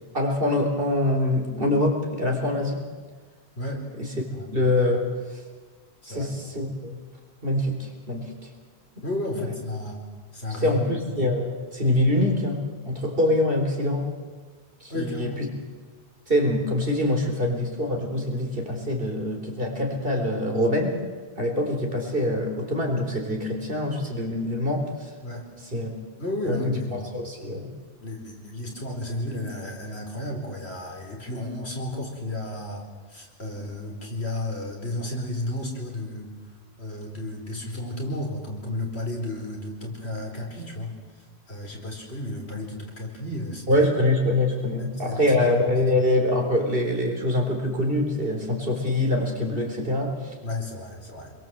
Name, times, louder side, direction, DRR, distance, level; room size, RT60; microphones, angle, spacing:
voice 1, 0.1-2.8 4.0-4.1 4.5-5.4 6.1-7.0 7.4-8.5 9.0-9.1 10.6-14.1 14.8-15.5 16.3-21.0 21.4-25.1 25.7-25.9 26.4-27.7 43.7-50.3, left 1 dB, 55° right, 2 dB, 4.1 m, -24 dB
voice 2, 6.0-6.3 9.0-10.0 10.3-10.8 14.9-15.4 25.2-25.5 26.2-27.0 28.0-36.3 36.8-40.9 41.5-43.9 44.7-45.4 50.4-51.3, left 1 dB, 70° left, 1 dB, 4.8 m, -32 dB
27.5 x 22.0 x 7.8 m, 1.4 s
omnidirectional pair, 1.1 m